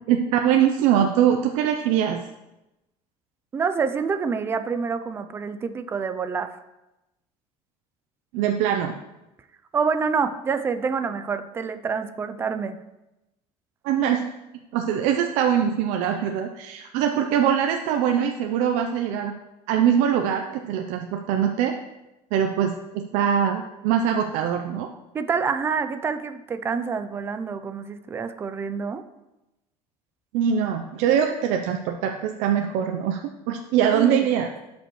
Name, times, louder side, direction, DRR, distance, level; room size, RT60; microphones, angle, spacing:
voice 1, 0.1-2.2 8.3-8.9 13.8-14.2 14.7-19.3 19.7-21.7 22.3-24.9 30.3-33.2 33.5-34.5, right 9 dB, 75° right, 4 dB, 0.6 m, -22 dB
voice 2, 3.5-6.6 9.7-12.8 25.1-29.0 33.9-34.2, right 5 dB, 20° right, 10 dB, 0.4 m, -27 dB
12.0 x 5.2 x 3.1 m, 0.97 s
cardioid pair, 170°, 13 cm